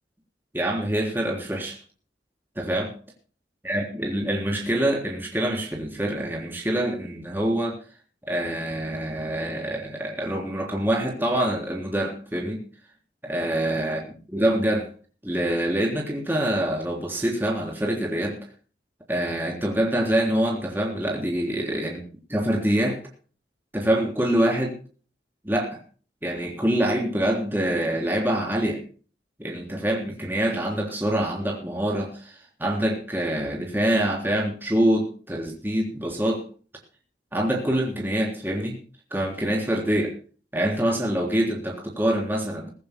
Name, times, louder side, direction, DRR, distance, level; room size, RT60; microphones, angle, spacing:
voice 1, 0.5-1.8 2.6-2.9 3.6-7.8 8.3-12.6 13.2-14.0 14.3-14.9 15.2-18.4 19.1-22.0 22.3-23.0 23.7-24.7 25.4-25.8 26.2-28.8 29.4-32.3 32.6-36.4 37.3-38.8 39.1-40.1 40.5-42.7, right 1 dB, 10° right, 0 dB, 3.5 m, -25 dB
23.0 x 15.0 x 2.2 m, 0.39 s
head